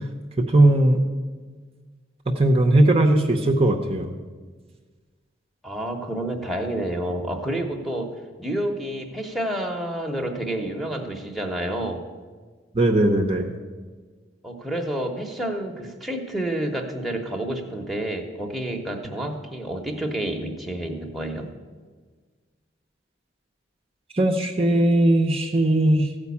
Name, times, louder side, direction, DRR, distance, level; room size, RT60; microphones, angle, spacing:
voice 1, 0.4-1.0 2.4-4.1 12.7-13.5 24.1-26.1, right 1 dB, 30° right, 3 dB, 0.8 m, -19 dB
voice 2, 5.6-12.1 14.4-21.5, right 1 dB, ahead, 3 dB, 1.0 m, -29 dB
14.5 x 5.2 x 8.4 m, 1.5 s
head